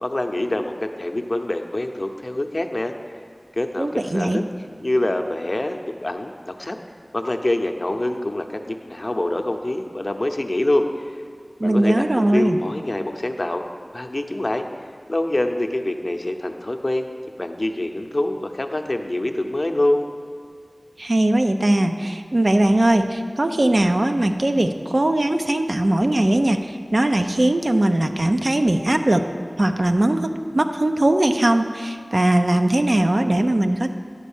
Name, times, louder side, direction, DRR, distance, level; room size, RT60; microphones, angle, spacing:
voice 1, 0.0-2.9 3.6-4.4 4.8-6.8 7.1-11.1 11.6-13.6 13.9-14.7 15.1-17.1 17.4-20.1, left 1 dB, 55° left, 5 dB, 0.6 m, -25 dB
voice 2, 3.8-4.4 11.6-12.6 21.0-29.3 29.6-33.9, right 1 dB, 60° right, 6 dB, 0.5 m, -20 dB
11.0 x 4.2 x 7.1 m, 2.1 s
wide cardioid pair, 40°, 0 cm